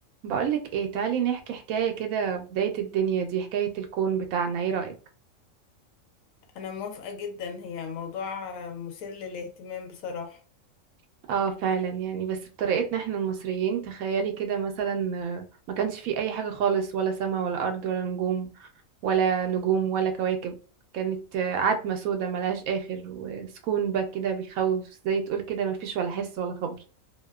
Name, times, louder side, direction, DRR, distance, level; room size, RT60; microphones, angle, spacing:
voice 1, 0.2-4.9 11.3-18.7 19.0-20.5 20.9-26.8, right 7 dB, 90° right, 1.0 m, -28 dB
voice 2, 6.5-10.4, left 6 dB, 80° left, 1.0 m, -36 dB
2.5 x 2.1 x 2.3 m
omnidirectional pair, 1.4 m